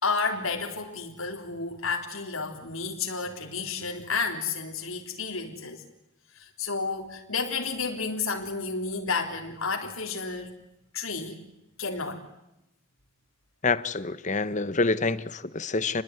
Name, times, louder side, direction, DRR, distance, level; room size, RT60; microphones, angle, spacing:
voice 1, 0.0-5.8 6.4-10.5 10.9-11.4 11.8-12.2, left 4 dB, 90° left, 3.6 m, -31 dB
voice 2, 13.6-16.0, left 3 dB, 35° left, 1.1 m, -27 dB
29.0 x 21.0 x 9.7 m
head